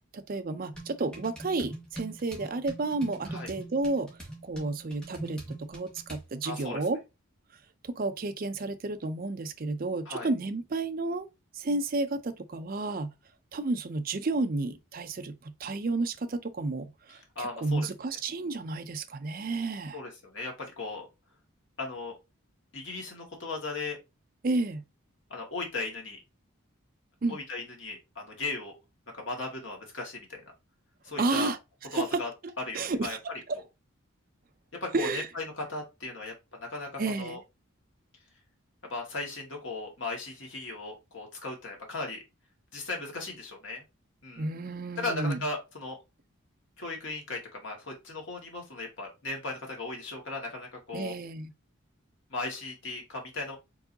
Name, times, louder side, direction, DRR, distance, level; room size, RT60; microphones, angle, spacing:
voice 1, 0.1-7.0 7.8-11.3 11.5-13.1 13.5-20.0 24.4-24.8 27.2-27.4 31.2-31.6 31.9-33.2 33.5-33.6 34.9-35.3 37.0-37.4 44.4-45.4 50.9-51.5, right 3 dB, 45° right, 0.5 m, -31 dB
sound 1, 0.7-6.3, right 1 dB, 5° left, 1.5 m, -43 dB
voice 2, 6.4-6.8 10.1-10.3 17.4-17.9 19.9-21.1 21.8-22.2 22.7-24.0 25.3-26.2 27.3-28.7 29.1-30.5 31.0-31.5 31.9-32.3 32.7-33.2 34.8-37.4 38.9-42.2 42.7-43.8 44.2-44.4 45.0-46.0 46.8-51.1 52.3-53.6, left 3 dB, 60° left, 1.9 m, -37 dB
4.6 x 3.8 x 2.7 m
head